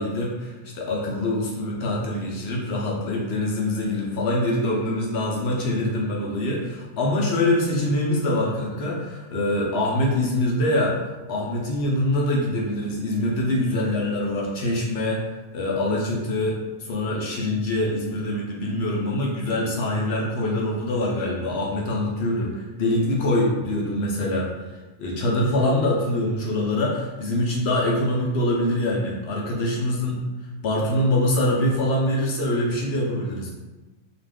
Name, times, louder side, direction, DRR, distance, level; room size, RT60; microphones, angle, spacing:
voice 1, 0.0-11.0 11.3-15.2 15.5-30.2 30.6-33.5, left 1 dB, 65° left, -2 dB, 0.7 m, -24 dB
2.5 x 2.4 x 3.4 m, 1.1 s
omnidirectional pair, 1.5 m